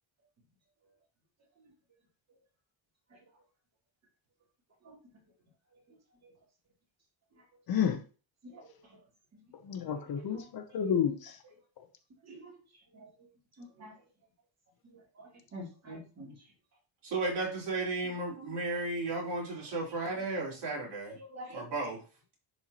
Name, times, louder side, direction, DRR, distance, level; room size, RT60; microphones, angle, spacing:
voice 1, 7.7-8.0 9.7-11.3, left 8 dB, 50° left, 0.9 m, -30 dB
voice 2, 13.6-13.9 15.2-16.3 18.4-18.6 21.1-21.6, equal, 35° right, 3.0 m, -47 dB
voice 3, 17.0-21.2 21.5-22.0, right 2 dB, 60° right, 4.1 m, -34 dB
10.5 x 4.5 x 2.9 m
cardioid pair, 170°, 47 cm